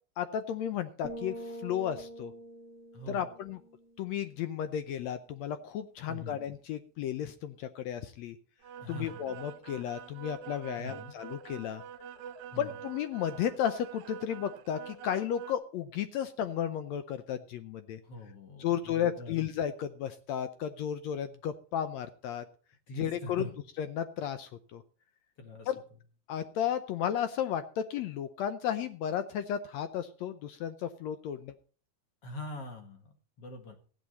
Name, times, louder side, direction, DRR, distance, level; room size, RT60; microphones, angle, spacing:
voice 1, 0.2-2.3 3.1-3.6 4.0-8.4 8.9-11.8 12.6-18.0 18.6-22.4 23.0-23.4 23.8-24.8 25.7-25.8 26.3-31.5, left 9 dB, 85° left, 11 dB, 1.5 m, -33 dB
sound 1, 1.0-4.7, equal, 5° left, 1.9 m, -45 dB
voice 2, 2.9-3.3 6.1-6.4 8.8-9.2 10.8-11.1 12.5-12.7 18.0-19.4 22.9-23.6 25.4-25.7 32.2-33.8, left 1 dB, 50° left, 5 dB, 2.5 m, -43 dB
sound 2, 8.6-15.5, right 8 dB, 70° right, 2.0 m, -46 dB
15.0 x 10.0 x 4.1 m, 0.40 s
omnidirectional pair, 4.0 m